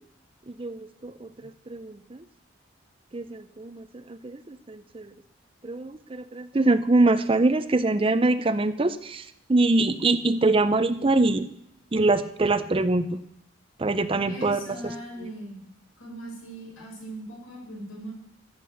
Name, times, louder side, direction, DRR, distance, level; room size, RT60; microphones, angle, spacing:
voice 1, 0.6-1.3 1.7-2.2 3.1-3.8 4.2-5.1 5.6-9.2 9.5-11.5 11.9-13.0 13.8-14.7, right 2 dB, 25° right, 12 dB, 0.5 m, -23 dB
voice 2, 14.3-15.6 16.0-18.1, equal, 85° left, -1 dB, 5.2 m, -39 dB
13.0 x 8.2 x 6.7 m, 0.76 s
head